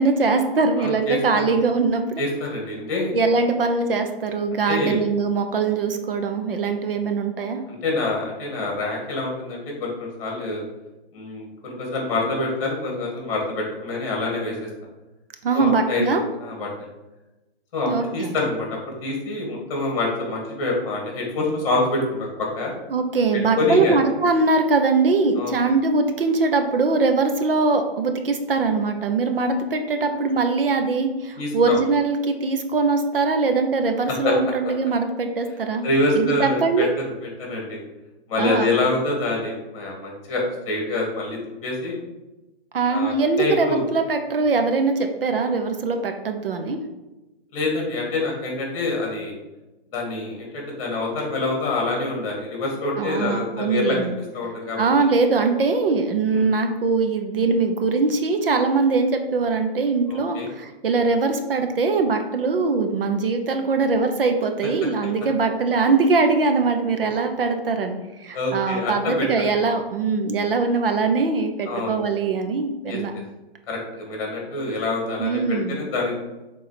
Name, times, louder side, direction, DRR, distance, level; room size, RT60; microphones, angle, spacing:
voice 1, 0.0-2.2 3.1-7.6 15.4-16.2 17.9-18.3 22.9-35.8 36.1-36.9 38.4-38.7 42.7-46.8 53.0-54.1 54.8-67.9 68.2-73.1 75.2-75.8, right 4 dB, 60° right, 6 dB, 0.9 m, -22 dB
voice 2, 0.8-1.4 2.2-3.1 4.7-5.0 7.7-10.6 11.1-14.7 15.5-16.7 17.7-22.7 23.6-24.0 25.4-25.5 31.4-31.8 34.1-34.3 35.8-36.9 37.2-37.8 38.3-42.0 42.9-43.8 47.5-49.3 49.9-54.9 56.3-56.5 60.1-60.5 68.3-69.6 71.7-72.0 72.9-73.0 73.7-76.2, left 2 dB, 30° left, -1 dB, 2.3 m, -26 dB
7.0 x 3.7 x 5.1 m, 1.0 s
hypercardioid pair, 155°, 31 cm